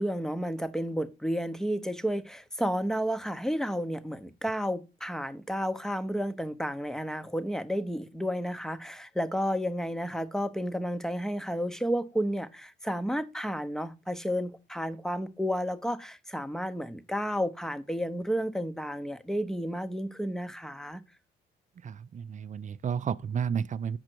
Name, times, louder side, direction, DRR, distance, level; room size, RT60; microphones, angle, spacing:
voice 1, 0.0-21.0, equal, ahead, 0.7 m, -31 dB
voice 2, 21.8-24.0, right 7 dB, 40° right, 0.4 m, -32 dB
7.7 x 5.1 x 4.5 m
cardioid pair, 90°, 20 cm